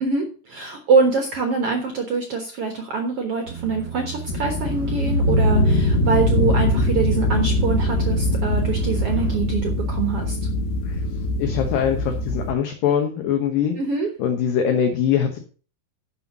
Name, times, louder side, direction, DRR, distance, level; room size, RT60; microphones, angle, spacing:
voice 1, 0.0-10.4 13.8-14.1, right 4 dB, 70° right, 4 dB, 1.4 m, -24 dB
sound 1, 3.5-9.4, right 10 dB, 45° right, 2.2 m, -35 dB
sound 2, 4.3-12.5, left 1 dB, 85° left, 3.1 m, -22 dB
voice 2, 11.4-13.8 14.2-15.4, left 8 dB, 65° left, 5 dB, 2.6 m, -22 dB
11.0 x 5.8 x 6.0 m, 0.38 s
omnidirectional pair, 4.8 m